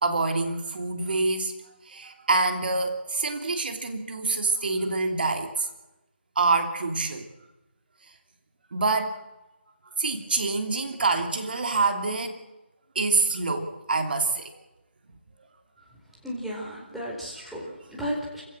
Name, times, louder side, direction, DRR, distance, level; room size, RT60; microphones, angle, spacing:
voice 1, 0.0-1.5 1.9-5.7 6.4-7.3 8.7-9.2 10.0-12.4 12.9-14.5, right 3 dB, 50° right, 6 dB, 2.8 m, -26 dB
voice 2, 16.2-18.4, equal, ahead, -5 dB, 4.5 m, -34 dB
27.0 x 16.0 x 7.7 m, 0.98 s
figure-of-eight pair, 155°, 6 cm